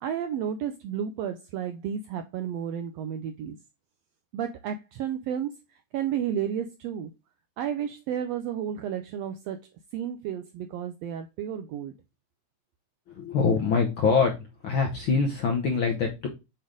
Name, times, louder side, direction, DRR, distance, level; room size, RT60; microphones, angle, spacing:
voice 1, 0.0-3.6 4.3-5.5 5.9-7.1 7.6-9.6 9.9-11.9, right 9 dB, 85° right, 8 dB, 1.5 m, -32 dB
voice 2, 13.1-14.3 14.6-16.3, left 5 dB, 65° left, 1 dB, 1.2 m, -24 dB
7.9 x 3.3 x 3.6 m, 0.25 s
omnidirectional pair, 3.5 m